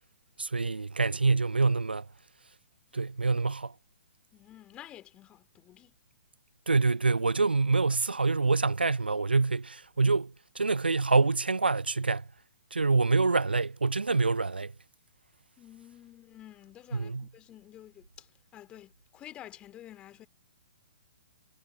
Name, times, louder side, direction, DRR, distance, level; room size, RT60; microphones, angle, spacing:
voice 1, 0.4-2.1 2.9-3.7 6.7-12.2 12.7-14.7 16.9-17.3, right 3 dB, 75° right, 0.4 m, -26 dB
voice 2, 4.3-5.9 15.6-20.3, left 12 dB, 20° left, 2.4 m, -50 dB
figure-of-eight pair, 120°, 5 cm